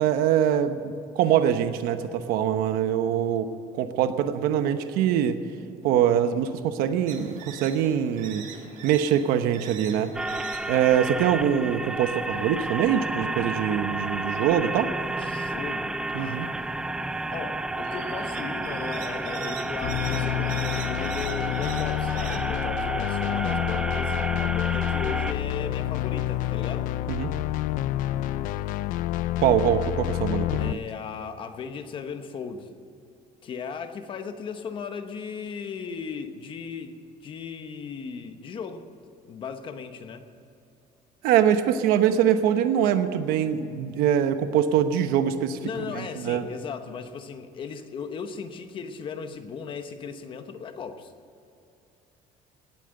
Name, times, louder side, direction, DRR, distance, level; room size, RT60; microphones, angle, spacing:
voice 1, 0.0-3.5 3.7-5.4 5.8-8.4 8.8-10.1 10.6-14.9 16.1-16.5 27.1-27.3 29.4-30.8 41.2-45.6 46.0-46.5, right 9 dB, 80° right, 9 dB, 1.0 m, -23 dB
sound 1, 7.1-22.4, right 6 dB, 60° right, 1.7 m, -44 dB
sound 2, 10.1-25.3, right 2 dB, 5° right, 0.3 m, -31 dB
voice 2, 15.2-16.6 17.3-26.9 30.6-32.7 33.4-38.8 39.2-40.3 45.6-51.1, left 6 dB, 35° left, 8 dB, 1.0 m, -37 dB
sound 3, 19.8-30.7, left 14 dB, 65° left, 0.4 m, -28 dB
18.5 x 9.0 x 7.8 m, 2.7 s
cardioid pair, 175°, 15 cm